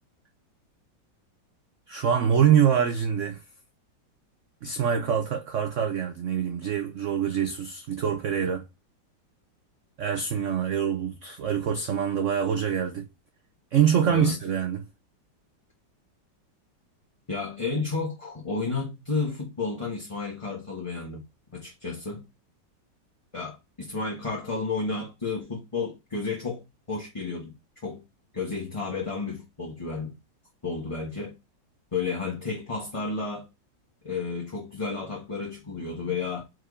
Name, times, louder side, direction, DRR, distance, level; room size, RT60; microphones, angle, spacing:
voice 1, 1.9-3.4 4.6-8.7 10.0-13.1 13.7-14.9, right 8 dB, 80° right, 0.6 m, -25 dB
voice 2, 14.0-14.4 17.3-21.2 21.5-22.2 23.3-27.5 27.8-28.0 28.3-30.1 30.6-31.3 31.9-33.5 34.0-36.4, left 4 dB, 20° left, 1.2 m, -32 dB
4.8 x 4.5 x 4.9 m
omnidirectional pair, 2.1 m